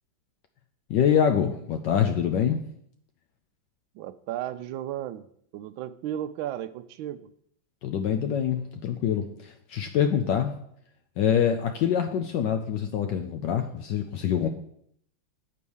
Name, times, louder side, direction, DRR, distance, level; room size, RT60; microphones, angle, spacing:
voice 1, 0.9-2.6 7.8-10.6 11.2-14.5, left 8 dB, 70° left, 6 dB, 1.2 m, -25 dB
voice 2, 3.9-5.2 5.5-7.3, right 12 dB, 85° right, 14 dB, 1.3 m, -34 dB
8.3 x 4.7 x 7.0 m, 0.69 s
omnidirectional pair, 2.1 m